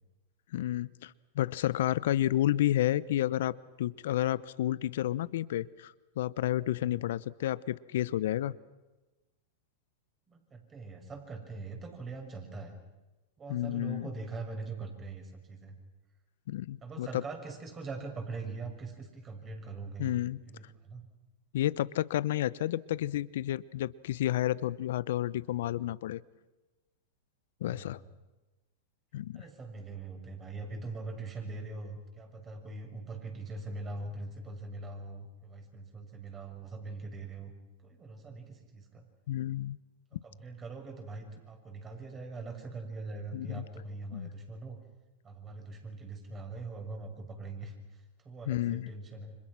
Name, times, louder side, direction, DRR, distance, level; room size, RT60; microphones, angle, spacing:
voice 1, 0.5-8.5 13.5-14.1 16.5-17.2 20.0-20.4 21.5-26.2 27.6-28.0 29.1-29.4 39.3-39.8 40.1-40.2 43.3-43.6 44.1-44.3 48.5-48.9, left 13 dB, 70° left, 20 dB, 0.8 m, -31 dB
voice 2, 10.3-12.8 13.4-15.8 16.8-20.1 20.4-21.0 27.6-28.0 29.3-37.5 37.8-39.0 40.2-44.8 45.2-49.4, right 3 dB, 25° right, 4 dB, 6.4 m, -42 dB
30.0 x 26.0 x 6.2 m, 1.1 s
hypercardioid pair, 110°, 0 cm